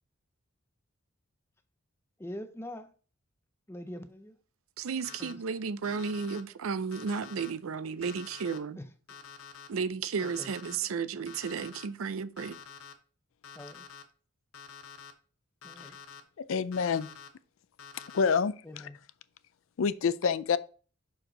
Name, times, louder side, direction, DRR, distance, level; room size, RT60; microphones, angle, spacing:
voice 1, 2.2-2.9 3.7-4.4 5.2-5.4 6.8-7.0 8.8-8.9 10.2-10.5 13.5-13.8 15.6-16.0 18.6-19.0, left 1 dB, 10° left, 0.5 m, -44 dB
voice 2, 4.8-8.8 9.7-12.6, right 5 dB, 75° right, 0.5 m, -33 dB
Alarm, 5.0-5.3 5.8-6.4 6.9-7.5 8.0-8.6 9.1-9.7 10.2-10.8 11.3-11.9 12.4-12.9 13.4-14.0 14.5-15.1 15.6-16.2 16.7-17.3 17.8-18.4, left 6 dB, 85° left, 0.9 m, -48 dB
voice 3, 16.4-17.1 18.1-18.9 19.8-20.6, left 6 dB, 70° left, 0.4 m, -27 dB
6.2 x 4.9 x 3.8 m
head